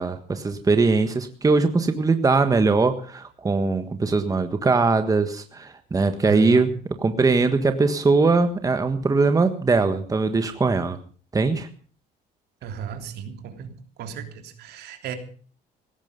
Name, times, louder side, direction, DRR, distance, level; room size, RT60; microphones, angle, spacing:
voice 1, 0.0-11.0 11.3-11.7, right 3 dB, 20° right, 8 dB, 1.5 m, -21 dB
voice 2, 6.2-6.7 12.6-13.7 14.0-15.2, right 8 dB, 75° right, 5 dB, 3.3 m, -35 dB
17.5 x 15.5 x 5.3 m, 0.42 s
cardioid pair, 110°, 17 cm